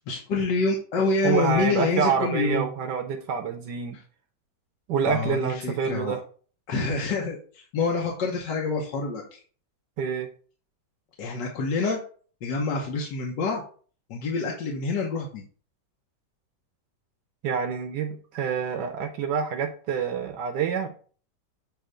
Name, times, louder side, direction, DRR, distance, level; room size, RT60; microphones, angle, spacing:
voice 1, 0.1-2.7 5.0-6.2 6.7-9.4 11.2-12.0 12.4-13.6 14.1-15.4, left 4 dB, 80° left, -1 dB, 1.6 m, -27 dB
voice 2, 1.2-4.0 4.9-6.2 10.0-10.3 17.4-20.9, right 6 dB, 80° right, 5 dB, 1.4 m, -27 dB
7.7 x 2.8 x 5.0 m, 0.43 s
omnidirectional pair, 1.9 m